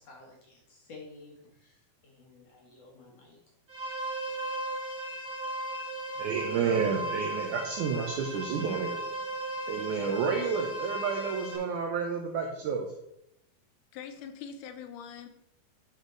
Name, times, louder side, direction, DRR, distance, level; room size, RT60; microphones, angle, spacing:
voice 1, 0.0-3.4, left 3 dB, 55° left, -1 dB, 1.9 m, -52 dB
sound 1, 3.7-11.5, right 1 dB, 25° right, 1.0 m, -36 dB
voice 2, 6.2-9.0 9.7-12.9, right 5 dB, 80° right, 2 dB, 1.7 m, -30 dB
voice 3, 13.9-15.3, left 7 dB, 80° left, 8 dB, 2.7 m, -43 dB
10.5 x 5.2 x 3.8 m, 0.80 s
omnidirectional pair, 4.5 m